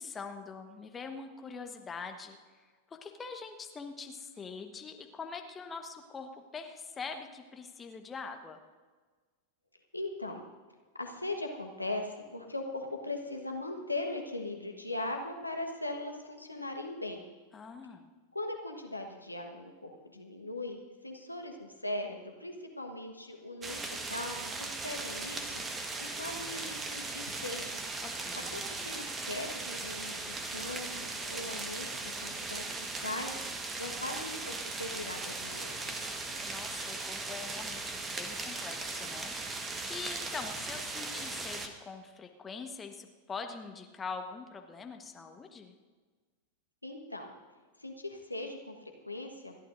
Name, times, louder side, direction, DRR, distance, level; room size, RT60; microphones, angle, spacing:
voice 1, 0.0-8.6 17.5-18.1 28.0-28.6 36.4-45.7, left 5 dB, 20° left, 5 dB, 1.3 m, -43 dB
voice 2, 9.9-10.4 10.9-17.2 18.3-23.8 24.1-25.5 26.0-27.8 28.5-33.4 33.7-36.0 46.8-47.3 47.8-49.6, left 2 dB, 85° left, 3 dB, 1.4 m, -39 dB
sound 1, 23.6-41.7, right 3 dB, 20° right, 1.4 m, -38 dB
28.5 x 11.5 x 2.6 m, 1.4 s
figure-of-eight pair, 90°, 0 cm